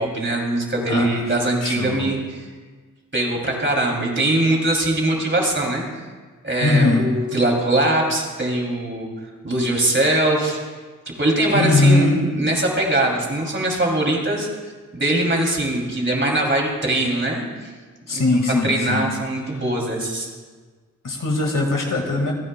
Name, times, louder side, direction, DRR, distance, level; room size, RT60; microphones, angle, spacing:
voice 1, 0.0-2.5 3.1-5.8 6.4-9.1 9.4-10.6 11.1-14.5 14.9-17.7 18.1-18.2 18.6-20.3, right 1 dB, 35° right, -1 dB, 3.0 m, -22 dB
voice 2, 0.9-1.2 1.6-2.1 6.6-7.1 11.5-12.2 18.1-19.0 21.0-22.3, left 2 dB, 70° left, 1 dB, 2.1 m, -20 dB
27.0 x 10.0 x 2.3 m, 1.4 s
cardioid pair, 60°, 33 cm